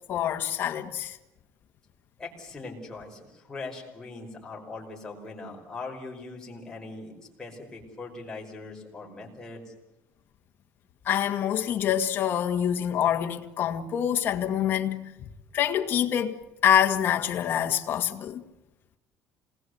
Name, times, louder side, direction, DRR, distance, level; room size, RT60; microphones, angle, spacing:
voice 1, 0.1-1.2 11.1-15.1 15.5-16.4 16.6-18.4, left 10 dB, 40° left, 1.9 m, -26 dB
voice 2, 2.2-9.7, left 3 dB, 10° left, 5.4 m, -41 dB
27.5 x 20.5 x 8.1 m
cardioid pair, 175°, 6 cm